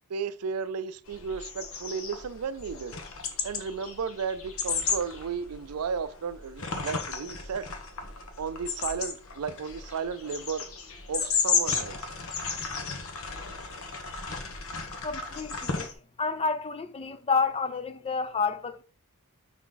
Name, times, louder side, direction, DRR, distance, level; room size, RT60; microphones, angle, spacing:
voice 1, 0.1-3.0 3.4-7.7 8.4-10.7 11.1-12.1, right 6 dB, 80° right, 0.5 m, -34 dB
sound 1, 1.1-15.9, left 5 dB, 65° left, 1.2 m, -34 dB
voice 2, 15.0-15.9 16.2-18.8, left 5 dB, 25° left, 0.5 m, -29 dB
5.9 x 5.0 x 3.9 m
head